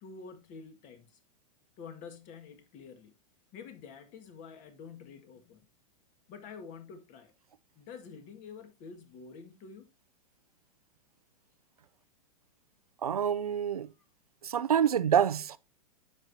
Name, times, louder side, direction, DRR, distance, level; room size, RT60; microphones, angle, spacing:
voice 1, 0.0-1.2 1.8-3.1 3.5-5.7 6.3-7.3 7.8-9.9, left 5 dB, 45° left, 1.9 m, -48 dB
voice 2, 13.0-13.9 14.4-15.6, right 8 dB, 85° right, 0.5 m, -27 dB
10.5 x 6.6 x 2.7 m
hypercardioid pair, 105°, 18 cm